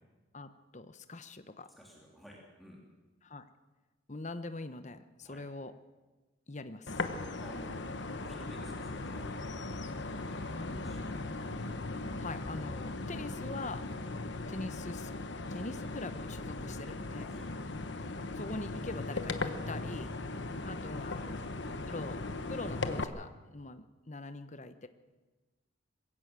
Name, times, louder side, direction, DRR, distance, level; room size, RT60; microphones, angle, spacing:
voice 1, 0.3-1.7 3.2-3.4 4.1-5.7 6.5-7.0 12.2-13.8 14.5-15.1 15.5-17.3 18.3-20.1 20.6-21.4 21.9-22.2 22.5-24.9, left 2 dB, 35° left, 10 dB, 1.0 m, -43 dB
voice 2, 1.7-2.8 5.2-5.4 7.4-9.6 10.1-11.2 13.9-14.0 17.2-17.5 20.0-20.1 21.1-21.3, equal, ahead, -3 dB, 3.3 m, -53 dB
sound 1, 6.9-23.0, left 2 dB, 60° left, 1.1 m, -38 dB
22.0 x 16.5 x 7.6 m, 1.2 s
head